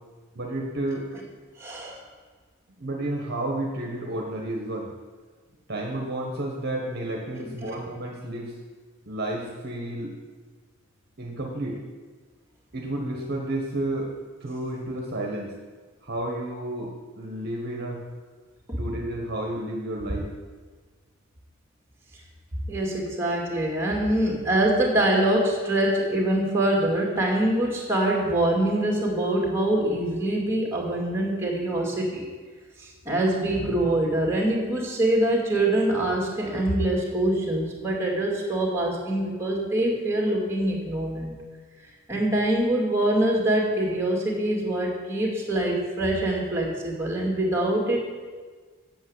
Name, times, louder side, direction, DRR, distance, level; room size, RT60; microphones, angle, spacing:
voice 1, 0.3-1.1 2.8-4.9 5.7-8.5 9.1-10.1 11.2-11.8 12.7-14.1 14.4-15.5 16.0-18.0 18.8-20.3, right 1 dB, 45° right, 0 dB, 1.2 m, -31 dB
voice 2, 1.6-2.0 7.4-7.7 18.7-18.8 22.7-32.3 32.8-41.4 42.1-48.0, right 1 dB, 10° right, -2 dB, 2.3 m, -24 dB
8.4 x 7.3 x 8.0 m, 1.5 s
head